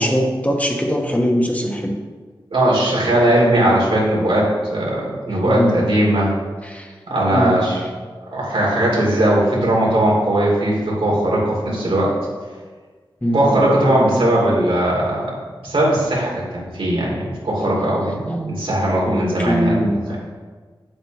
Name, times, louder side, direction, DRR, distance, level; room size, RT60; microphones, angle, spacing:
voice 1, 0.0-2.0 5.4-5.8 6.7-6.9 7.3-7.6 11.7-11.8 13.2-13.6 18.3-18.4 19.0-20.1, equal, 15° left, 0 dB, 1.1 m, -21 dB
voice 2, 2.5-6.3 7.1-7.8 8.3-12.1 13.3-15.3 15.6-20.2, right 1 dB, 90° right, -5 dB, 2.5 m, -18 dB
8.5 x 7.5 x 3.0 m, 1.4 s
wide cardioid pair, 70°, 9 cm